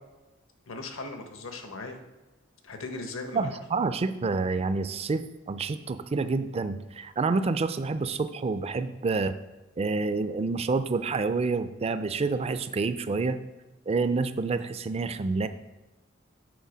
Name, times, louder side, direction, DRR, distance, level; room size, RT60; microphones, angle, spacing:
voice 1, 0.6-2.0 2.6-3.4, left 3 dB, 70° left, 5 dB, 1.0 m, -38 dB
voice 2, 3.3-9.3 9.8-13.4 13.9-15.5, right 4 dB, 30° right, 11 dB, 0.4 m, -28 dB
8.1 x 4.2 x 6.2 m, 1.1 s
head